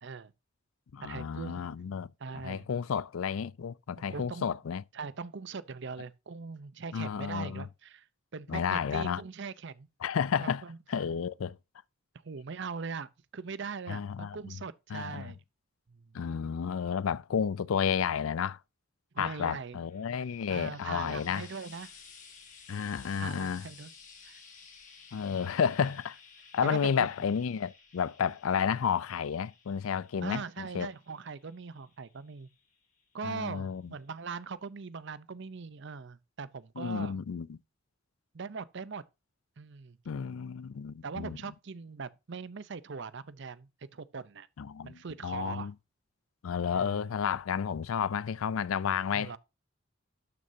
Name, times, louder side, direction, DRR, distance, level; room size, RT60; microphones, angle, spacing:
voice 1, 0.0-0.3 1.0-1.7 2.2-2.7 4.1-4.5 4.9-8.1 8.3-9.9 10.4-10.8 12.2-15.4 15.9-16.1 19.1-19.8 20.5-21.9 23.2-23.9 24.2-24.4 26.6-27.1 30.2-32.5 33.1-37.2 38.3-39.0 39.6-40.0 41.0-44.5 44.8-45.7 46.7-47.1 49.1-49.4, right 5 dB, 55° right, 0.6 m, -41 dB
voice 2, 0.9-2.1 2.3-4.8 6.9-7.6 8.5-9.2 10.0-10.6 10.9-11.6 13.9-14.6 14.9-15.3 16.1-18.6 19.2-21.5 22.7-23.6 25.1-26.2 26.5-30.9 33.2-33.8 36.8-37.6 40.1-41.4 44.6-45.7 46.4-49.4, left 7 dB, 80° left, 0.4 m, -31 dB
Frying (food), 19.7-33.1 34.1-34.2, left 5 dB, 40° left, 2.7 m, -55 dB
12.0 x 6.4 x 2.7 m
head